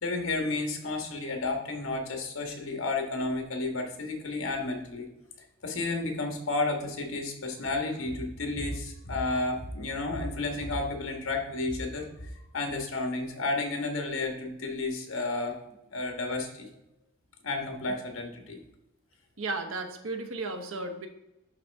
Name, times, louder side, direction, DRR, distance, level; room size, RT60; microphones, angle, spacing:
voice 1, 0.0-5.1 5.6-15.6 15.9-16.6 17.4-18.6, left 2 dB, 70° left, 3 dB, 1.5 m, -32 dB
voice 2, 19.4-21.1, right 3 dB, 70° right, 6 dB, 1.0 m, -34 dB
10.5 x 4.1 x 3.5 m, 0.88 s
head